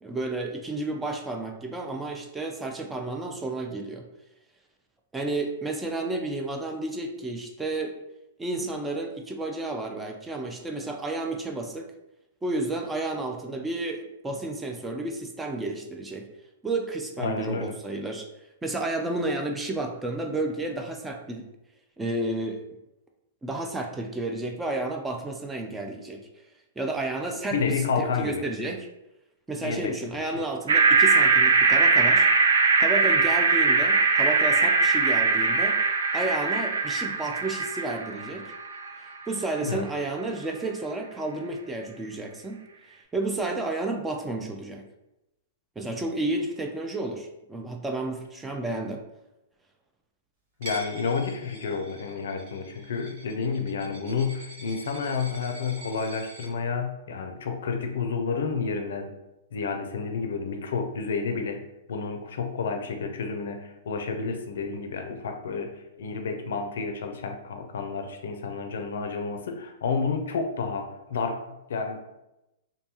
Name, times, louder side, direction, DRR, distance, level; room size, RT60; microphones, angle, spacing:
voice 1, 0.0-4.1 5.1-8.0 8.4-11.9 12.4-16.3 16.6-18.3 18.6-21.5 22.0-22.6 23.4-26.3 26.8-28.9 29.5-32.3 32.8-35.8 36.1-38.5 39.0-42.6 43.1-44.8 45.8-49.0, right 2 dB, 10° right, 3 dB, 0.3 m, -31 dB
voice 2, 17.2-17.7 27.5-28.4 29.6-30.4 39.6-39.9 50.6-59.1 59.5-61.6 61.9-72.0, left 5 dB, 75° left, 5 dB, 0.4 m, -30 dB
sound 1, 30.7-38.9, right 4 dB, 80° right, 0.4 m, -21 dB
Coin (dropping), 50.6-56.5, right 1 dB, 55° right, 1.0 m, -44 dB
2.6 x 2.2 x 2.8 m, 0.91 s
hypercardioid pair, 125°, 0 cm